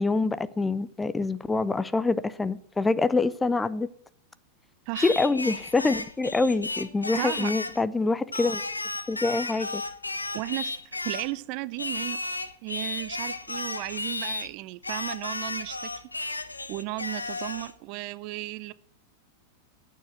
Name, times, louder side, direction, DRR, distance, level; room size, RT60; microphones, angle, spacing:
voice 1, 0.0-3.9 5.0-8.6 9.1-9.8, left 3 dB, 10° left, 0.4 m, -25 dB
Singing, 5.0-7.8 8.3-11.3 11.8-14.5 14.8-17.7, left 3 dB, 80° left, 0.7 m, -34 dB
voice 2, 7.1-7.5 10.3-12.2 12.6-15.9 16.7-18.7, right 20 dB, 45° right, 0.5 m, -35 dB
9.0 x 7.1 x 7.6 m
figure-of-eight pair, 90°, 0 cm